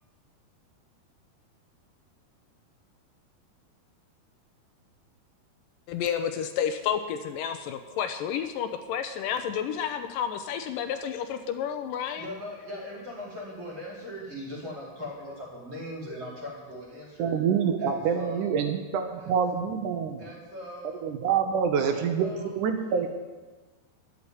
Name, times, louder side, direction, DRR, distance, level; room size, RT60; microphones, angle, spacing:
voice 1, 5.9-12.3, left 8 dB, 80° left, 8 dB, 2.0 m, -30 dB
voice 2, 12.2-17.4 17.8-18.6 19.1-19.4 20.2-21.0 21.9-22.6 22.9-23.1, left 1 dB, 25° right, -7 dB, 4.1 m, -40 dB
voice 3, 17.2-20.2 21.0-23.1, right 7 dB, 75° right, 6 dB, 1.9 m, -26 dB
12.5 x 6.9 x 9.8 m, 1.3 s
omnidirectional pair, 4.6 m